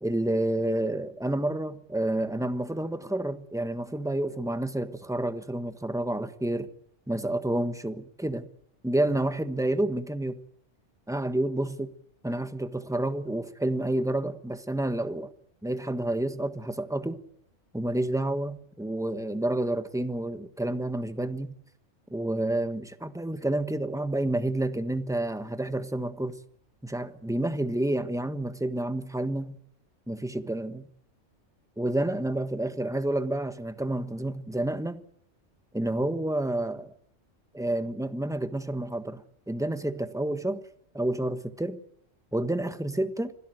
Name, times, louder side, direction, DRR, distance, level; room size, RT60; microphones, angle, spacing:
voice 1, 0.0-6.7 7.1-8.5 8.8-10.4 11.1-11.9 12.2-15.3 15.6-17.2 17.7-21.5 22.1-26.4 26.8-29.6 30.1-30.9 31.8-35.0 35.7-36.9 37.5-40.6 40.9-41.8 42.3-43.3, right 1 dB, 5° right, 1.2 m, -29 dB
25.5 x 17.0 x 9.2 m
omnidirectional pair, 1.3 m